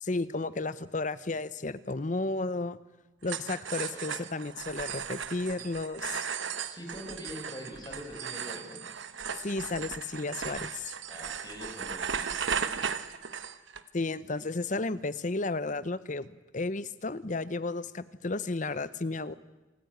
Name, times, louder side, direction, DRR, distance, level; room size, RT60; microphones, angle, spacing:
voice 1, 0.0-2.8 3.2-6.3 9.3-10.9 13.9-19.3, left 3 dB, 45° left, 15 dB, 0.8 m, -33 dB
sound 1, 3.2-13.8, right 7 dB, 85° right, 1.2 m, -36 dB
voice 2, 3.7-4.3 6.7-8.8 11.1-12.9, equal, 20° left, 2 dB, 5.5 m, -44 dB
28.0 x 14.0 x 9.4 m, 1.1 s
head